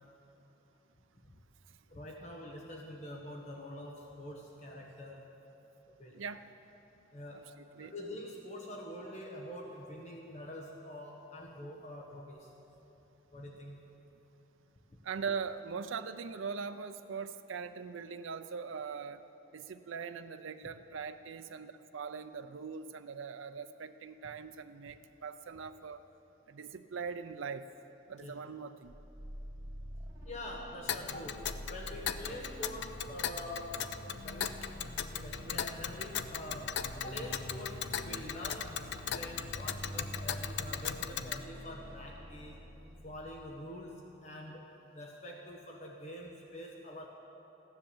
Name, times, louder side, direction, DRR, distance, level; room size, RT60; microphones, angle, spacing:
voice 1, 1.9-5.4 6.0-6.2 7.1-7.5 7.8-12.5 13.3-13.8 28.2-28.4 30.2-33.9 34.2-34.7 35.1-42.6 43.0-44.7 44.9-47.1, left 1 dB, 35° left, 0 dB, 1.0 m, -45 dB
voice 2, 15.0-19.3 19.5-26.0 26.5-27.7 28.1-29.0, right 5 dB, 85° right, 9 dB, 0.5 m, -41 dB
sound 1, 28.8-43.4, equal, 20° right, 2.6 m, -47 dB
Tick, 30.9-41.4, left 8 dB, 60° left, 0.4 m, -39 dB
14.5 x 10.5 x 7.1 m, 3.0 s
head